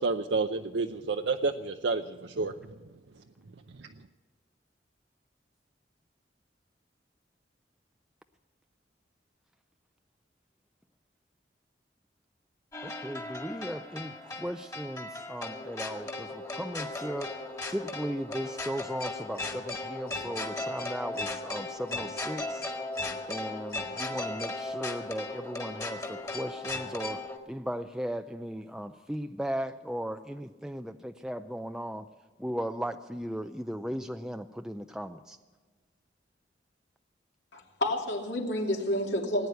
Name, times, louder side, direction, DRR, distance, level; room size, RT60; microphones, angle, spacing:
voice 1, 0.0-2.7 3.7-3.9, right 3 dB, 70° right, 6 dB, 0.7 m, -30 dB
sound 1, 12.7-27.4, left 2 dB, 20° left, 1.8 m, -37 dB
voice 2, 12.8-17.3 17.7-22.6 23.3-27.2 27.5-32.1 32.4-35.4, equal, 5° right, 7 dB, 0.4 m, -37 dB
voice 3, 37.5-39.5, left 1 dB, 75° left, 1 dB, 2.9 m, -30 dB
18.5 x 9.5 x 8.2 m, 1.3 s
head